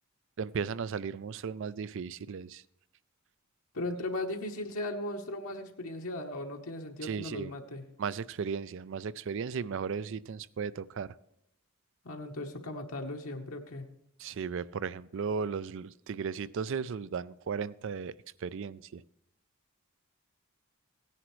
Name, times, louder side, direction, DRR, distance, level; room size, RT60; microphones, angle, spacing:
voice 1, 0.4-2.6 7.0-7.5 8.0-11.1 14.2-18.1 18.4-19.0, right 6 dB, 55° right, 19 dB, 0.4 m, -35 dB
voice 2, 3.7-7.8 12.0-13.9, left 1 dB, 70° left, 2 dB, 1.1 m, -37 dB
17.0 x 9.9 x 3.1 m, 0.81 s
head